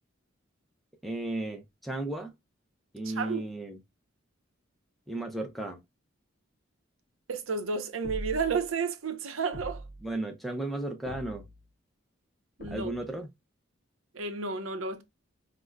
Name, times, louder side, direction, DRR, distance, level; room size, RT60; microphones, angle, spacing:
voice 1, 1.0-2.3 2.9-3.8 5.1-5.8 10.0-11.4 12.7-13.3, right 2 dB, ahead, 0.5 m, -34 dB
voice 2, 3.1-3.4 7.3-9.8 12.6-12.9 14.1-15.0, right 5 dB, 80° right, 0.7 m, -31 dB
sound 1, 8.0-8.6 9.5-10.1 11.0-11.7 12.6-13.2, equal, 50° left, 0.6 m, -42 dB
5.0 x 2.1 x 2.2 m
head